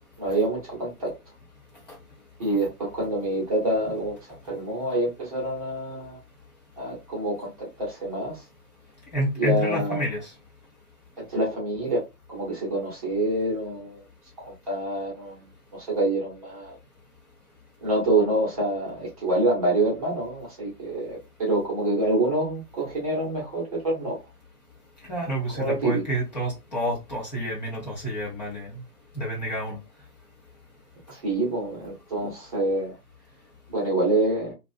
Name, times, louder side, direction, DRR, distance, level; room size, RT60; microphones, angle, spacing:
voice 1, 0.2-1.1 2.4-4.1 4.4-6.2 6.8-8.4 9.4-10.0 11.2-12.0 12.3-14.0 14.4-15.5 15.7-16.8 17.8-24.2 25.5-26.0 31.1-32.9 33.7-34.5, right 2 dB, 20° right, 0.9 m, -26 dB
voice 2, 9.1-10.3 25.1-28.8 29.1-29.8 32.2-32.3, equal, 25° left, 0.8 m, -29 dB
2.4 x 2.2 x 2.5 m
figure-of-eight pair, 140°, 49 cm